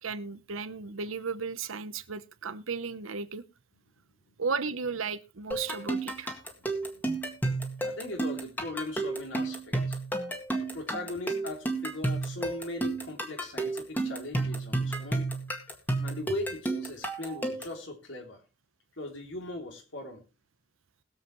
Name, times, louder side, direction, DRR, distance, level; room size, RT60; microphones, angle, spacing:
voice 1, 0.0-3.4 4.4-6.3, right 5 dB, 85° right, 0.9 m, -34 dB
sound 1, 5.5-17.8, right 2 dB, 10° left, 1.8 m, -32 dB
voice 2, 7.8-10.0 10.7-15.3 16.0-18.4 19.0-20.2, left 2 dB, 65° left, 3.1 m, -39 dB
21.0 x 7.6 x 3.1 m
head